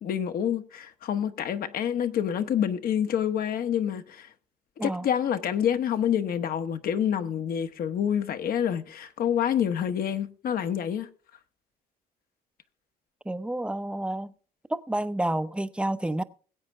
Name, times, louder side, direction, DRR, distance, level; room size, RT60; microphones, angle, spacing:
voice 1, 0.0-4.3 4.8-11.1, left 9 dB, 60° left, 1.3 m, -27 dB
voice 2, 13.3-14.3 14.7-16.2, right 1 dB, 5° right, 0.7 m, -29 dB
21.0 x 8.3 x 3.4 m
cardioid pair, 110°, 17 cm